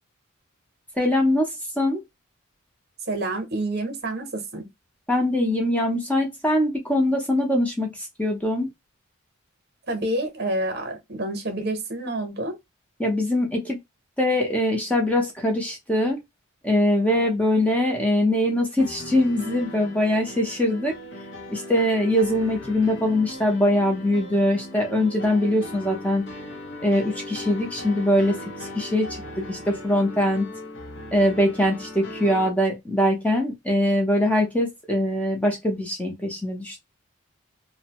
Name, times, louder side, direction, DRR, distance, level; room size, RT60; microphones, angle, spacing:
voice 1, 1.0-2.0 5.1-8.7 13.0-13.8 14.2-16.2 16.6-20.9 21.5-26.2 26.8-30.5 31.1-36.8, left 1 dB, 5° left, 0.6 m, -22 dB
voice 2, 3.1-4.7 9.9-12.6, right 1 dB, 45° right, 0.8 m, -28 dB
sound 1, 18.8-32.5, left 1 dB, 50° left, 0.7 m, -38 dB
2.6 x 2.1 x 2.8 m
head